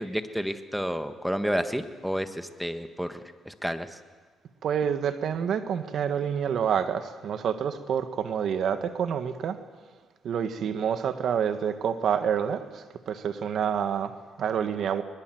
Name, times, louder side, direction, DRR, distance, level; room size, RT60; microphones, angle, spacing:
voice 1, 0.0-3.2 3.4-4.0, equal, ahead, 8 dB, 1.6 m, -30 dB
voice 2, 4.6-9.6 10.2-15.0, right 8 dB, 65° right, 9 dB, 1.7 m, -28 dB
22.0 x 21.5 x 7.9 m, 1.4 s
cardioid pair, 90°, 0 cm